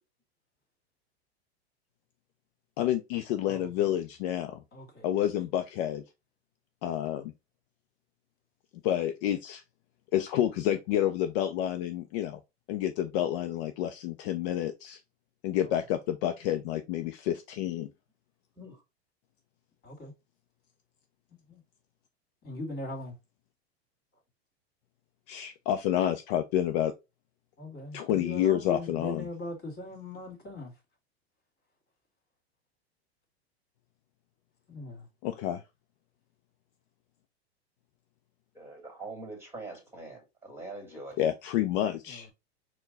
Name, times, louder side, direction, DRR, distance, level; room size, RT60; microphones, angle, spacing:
voice 1, 2.8-4.6 5.0-6.0 6.8-7.3 8.8-9.6 10.1-12.4 12.7-15.0 15.4-17.9 25.3-26.9 27.9-29.3 35.2-35.6 41.2-42.3, left 11 dB, 55° left, 0.5 m, -29 dB
voice 2, 4.7-5.1 19.8-20.1 21.5-21.6 22.4-23.1 27.6-30.7 34.7-35.0 42.1-42.3, left 1 dB, 30° left, 2.0 m, -40 dB
voice 3, 38.5-41.2, right 2 dB, 5° right, 2.0 m, -43 dB
4.4 x 2.3 x 3.8 m
hypercardioid pair, 120°, 32 cm